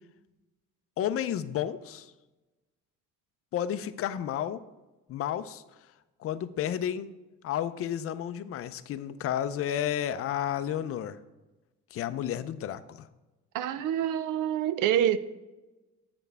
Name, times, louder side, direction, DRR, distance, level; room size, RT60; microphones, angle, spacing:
voice 1, 1.0-2.1 3.5-4.6 5.1-5.6 6.2-7.1 7.4-11.2 11.9-13.1, left 10 dB, 50° left, 12 dB, 0.5 m, -31 dB
voice 2, 13.5-15.2, right 10 dB, 90° right, 14 dB, 0.6 m, -26 dB
7.8 x 7.0 x 3.3 m, 1.1 s
cardioid pair, 155°, 31 cm